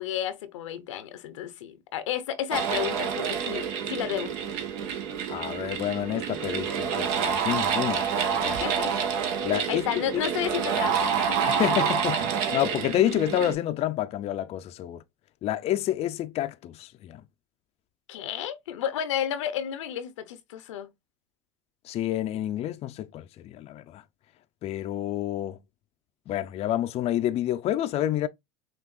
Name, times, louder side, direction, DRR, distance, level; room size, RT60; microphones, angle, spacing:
voice 1, 0.0-4.3 8.5-8.9 9.7-11.7 18.1-20.9, left 10 dB, 90° left, 0.7 m, -32 dB
sound 1, 2.5-13.5, right 7 dB, 70° right, 1.1 m, -28 dB
voice 2, 5.3-8.1 8.4-8.6 9.4-9.9 11.5-12.2 12.5-15.0 15.4-17.2 21.8-24.0 24.6-25.6 26.3-28.3, left 12 dB, 40° left, 0.5 m, -28 dB
5.9 x 2.5 x 2.5 m
supercardioid pair, 100°, 15 cm